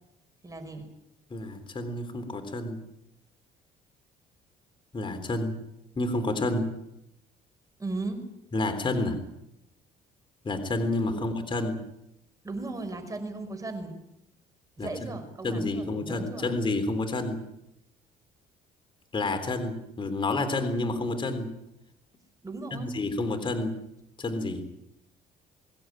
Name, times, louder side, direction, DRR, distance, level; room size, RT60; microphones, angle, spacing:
voice 1, 0.4-0.9 7.8-8.2 11.1-11.3 12.4-13.9 14.8-16.5 22.4-22.9, right 2 dB, 20° right, 7 dB, 5.5 m, -36 dB
voice 2, 1.3-2.8 4.9-5.6 6.0-6.7 8.5-9.2 10.4-11.8 14.8-14.9 15.4-17.4 19.1-21.5 22.7-23.8 24.2-24.6, left 2 dB, 30° left, 6 dB, 3.7 m, -29 dB
23.5 x 16.5 x 9.1 m, 0.81 s
cardioid pair, 110°, 17 cm